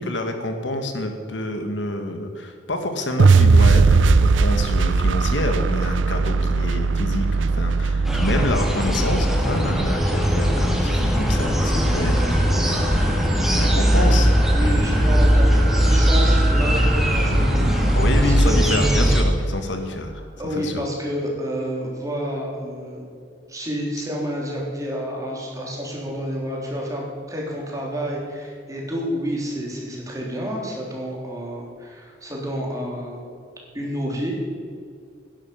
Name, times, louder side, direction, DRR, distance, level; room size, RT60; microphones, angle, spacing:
voice 1, 0.0-14.3 14.6-14.7 17.9-20.9, left 1 dB, 75° left, 6 dB, 1.6 m, -28 dB
sound 1, 3.2-9.4, right 4 dB, 80° right, 0.5 m, -18 dB
sound 2, 8.0-19.2, equal, ahead, 1.8 m, -19 dB
sound 3, 9.3-20.6, right 1 dB, 55° right, 2.5 m, -34 dB
voice 2, 14.5-18.6 20.4-23.0 23.5-33.2 33.7-34.6, equal, 20° right, -2 dB, 3.5 m, -29 dB
11.0 x 11.0 x 7.0 m, 2.2 s
head